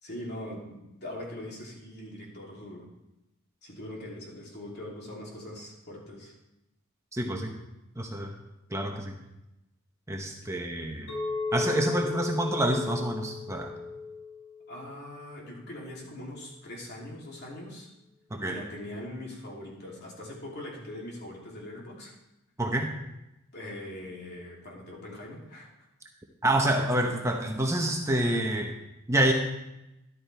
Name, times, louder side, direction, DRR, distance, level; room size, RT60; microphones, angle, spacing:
voice 1, 0.0-2.9 3.6-6.3 14.7-17.9 18.4-22.2 23.5-25.7, left 1 dB, 50° left, -3 dB, 3.1 m, -41 dB
voice 2, 7.1-7.5 8.0-8.3 8.7-9.2 10.1-11.1 11.5-13.7 18.3-18.6 22.6-22.9 26.4-28.7 29.1-29.3, right 1 dB, 15° right, 2 dB, 1.0 m, -27 dB
Chink clink, 11.1-15.3, left 4 dB, 70° left, 4.4 m, -35 dB
13.5 x 11.5 x 3.5 m, 0.93 s
head